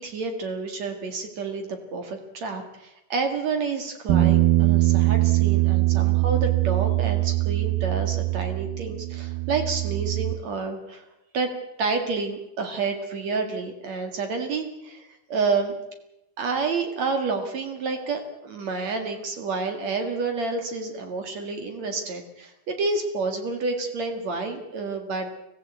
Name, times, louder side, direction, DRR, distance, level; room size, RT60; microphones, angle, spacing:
voice 1, 0.0-11.0 11.3-11.5 11.8-15.7 16.4-25.4, right 4 dB, 60° right, 5 dB, 3.1 m, -29 dB
Bass guitar, 4.1-10.3, right 17 dB, 80° right, 2.7 m, -22 dB
24.0 x 15.5 x 8.3 m, 0.88 s
omnidirectional pair, 3.7 m